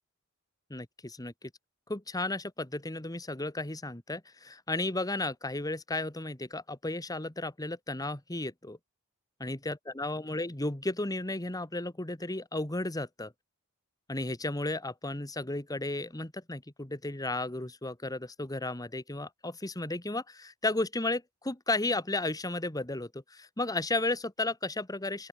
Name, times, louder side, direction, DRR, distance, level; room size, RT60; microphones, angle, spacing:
voice 1, 0.7-1.5 1.9-8.8 9.4-13.3 14.1-25.3, left 2 dB, 15° left, 1.7 m, -34 dB
open air
head